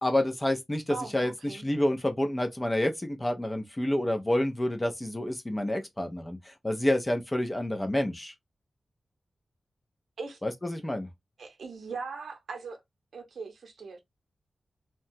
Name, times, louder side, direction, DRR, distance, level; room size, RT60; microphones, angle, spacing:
voice 1, 0.0-8.3 10.4-11.1, left 1 dB, 15° left, 0.5 m, -29 dB
voice 2, 0.9-1.7 10.2-10.4 11.4-12.8 13.1-14.0, right 4 dB, 85° right, 0.7 m, -40 dB
2.8 x 2.2 x 2.6 m
wide cardioid pair, 160°, 0 cm